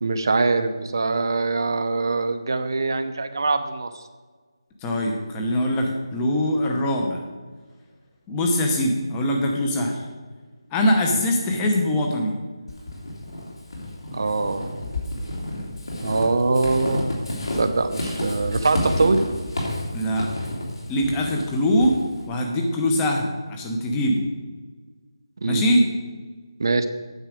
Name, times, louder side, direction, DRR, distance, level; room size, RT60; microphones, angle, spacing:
voice 1, 0.0-4.0 11.1-11.2 14.1-14.7 16.0-17.2 17.6-19.2 25.4-25.6 26.6-26.9, right 3 dB, 50° right, 9 dB, 0.8 m, -23 dB
voice 2, 4.8-7.2 8.3-10.0 10.7-12.3 19.9-20.3 20.9-21.9 22.3-24.2 25.5-25.9, equal, 10° left, 1 dB, 0.8 m, -22 dB
Walk footsteps / Squeak, 12.7-22.3, left 1 dB, 65° left, 2.9 m, -30 dB
9.2 x 7.3 x 5.0 m, 1.4 s
figure-of-eight pair, 175°, 3 cm